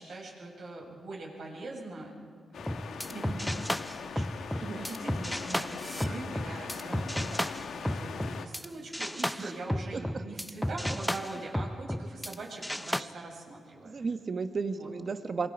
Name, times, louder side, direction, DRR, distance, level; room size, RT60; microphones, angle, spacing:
voice 1, 0.0-2.1 2.6-13.9 14.7-14.9, right 2 dB, 65° right, -2 dB, 6.9 m, -42 dB
sound 1, 2.5-8.5, left 6 dB, 80° left, 1.4 m, -41 dB
sound 2, 2.6-8.7 8.9-12.3 12.6-13.0, equal, 5° left, 0.5 m, -33 dB
voice 2, 9.9-10.2 13.8-15.5, right 4 dB, 45° right, 8 dB, 1.3 m, -34 dB
27.0 x 23.0 x 5.0 m, 2.1 s
cardioid pair, 100°, 0 cm